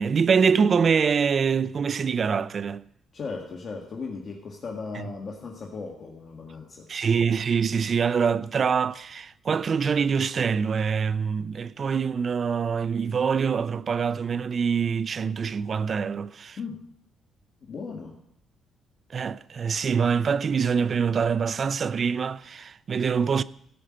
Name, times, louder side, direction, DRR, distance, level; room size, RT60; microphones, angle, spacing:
voice 1, 0.0-2.8 4.9-5.0 6.9-16.6 19.1-23.4, right 6 dB, 45° right, 0.4 m, -25 dB
voice 2, 3.1-6.9 16.6-16.9 17.6-18.2, left 4 dB, 45° left, 1.9 m, -37 dB
15.5 x 5.6 x 7.7 m
cardioid pair, 90°, 0 cm